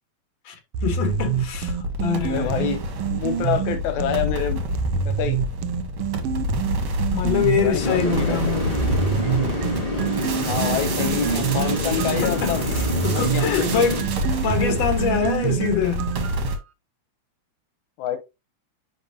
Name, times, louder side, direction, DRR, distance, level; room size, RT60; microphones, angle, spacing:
voice 1, 0.5-2.7 7.1-8.9 12.2-14.1 14.4-16.1, left 7 dB, 65° left, 2.6 m, -25 dB
sound 1, 0.7-4.3 4.7-8.3 8.7-16.5, right 9 dB, 80° right, 1.3 m, -27 dB
sound 2, 1.1-16.6, equal, 50° right, 1.4 m, -28 dB
voice 2, 2.2-2.8 3.1-4.6 5.1-5.4 7.6-8.6 10.4-12.7 13.1-13.7 14.3-14.8 15.1-15.5 18.0-18.2, left 9 dB, 85° left, 2.3 m, -27 dB
sound 3, 7.8-14.0, left 1 dB, 15° left, 1.3 m, -27 dB
10.0 x 3.6 x 2.7 m
omnidirectional pair, 3.3 m